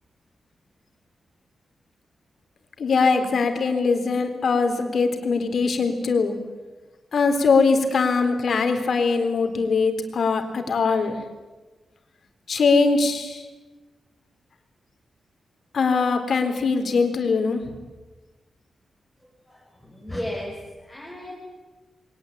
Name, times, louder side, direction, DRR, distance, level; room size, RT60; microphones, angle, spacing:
voice 1, 2.8-6.3 7.1-11.2 12.5-13.4 15.7-17.6, left 4 dB, 55° left, 5 dB, 3.9 m, -21 dB
voice 2, 19.5-21.3, left 1 dB, ahead, -3 dB, 6.1 m, -35 dB
29.0 x 22.5 x 8.8 m, 1.2 s
wide cardioid pair, 170°, 0 cm